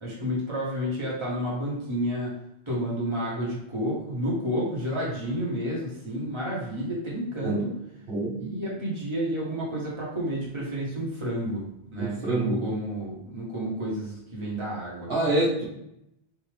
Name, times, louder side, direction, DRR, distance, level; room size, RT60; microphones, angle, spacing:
voice 1, 0.0-2.3 2.7-7.7 8.4-11.6 11.9-15.1, equal, 25° right, -5 dB, 1.4 m, -30 dB
voice 2, 12.0-12.6 15.1-15.6, right 1 dB, 65° right, -7 dB, 1.3 m, -25 dB
4.3 x 3.6 x 3.4 m, 0.81 s
omnidirectional pair, 1.1 m